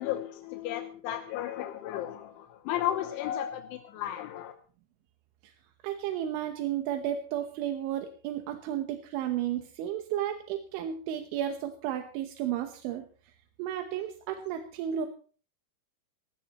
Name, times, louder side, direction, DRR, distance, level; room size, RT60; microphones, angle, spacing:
voice 1, 0.0-4.5, left 12 dB, 80° left, 6 dB, 3.4 m, -34 dB
voice 2, 5.8-15.1, right 10 dB, 80° right, 5 dB, 3.5 m, -33 dB
19.0 x 18.5 x 3.0 m, 0.40 s
omnidirectional pair, 5.4 m